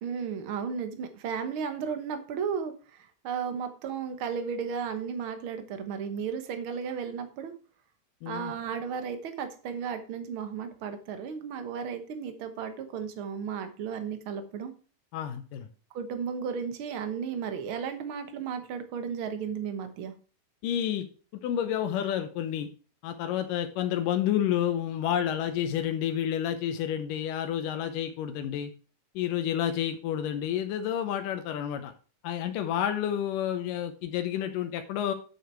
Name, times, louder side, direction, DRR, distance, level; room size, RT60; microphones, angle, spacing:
voice 1, 0.0-7.5 8.2-14.7 15.9-20.1, right 6 dB, 55° right, 8 dB, 1.5 m, -34 dB
voice 2, 8.2-8.5 15.1-15.7 20.6-21.1 21.3-22.7 23.0-28.7 29.2-31.9 32.2-35.1, left 10 dB, 90° left, 7 dB, 2.5 m, -30 dB
8.7 x 6.6 x 4.5 m, 0.37 s
omnidirectional pair, 3.7 m